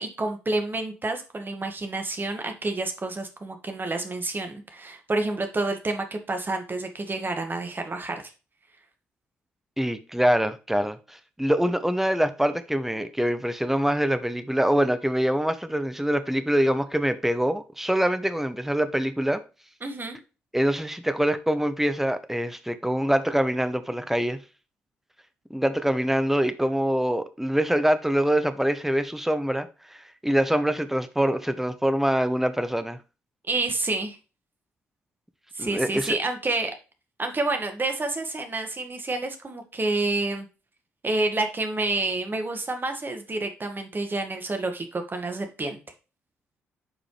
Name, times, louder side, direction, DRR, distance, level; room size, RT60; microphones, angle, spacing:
voice 1, 0.0-8.3 19.8-20.2 33.5-34.2 35.5-36.7 37.2-40.5 41.0-45.8, right 2 dB, 30° right, 1.8 m, -29 dB
voice 2, 9.8-19.4 20.5-24.4 25.5-33.0 35.6-36.2, equal, 5° right, 1.0 m, -24 dB
8.7 x 5.1 x 3.2 m
figure-of-eight pair, 40°, 6 cm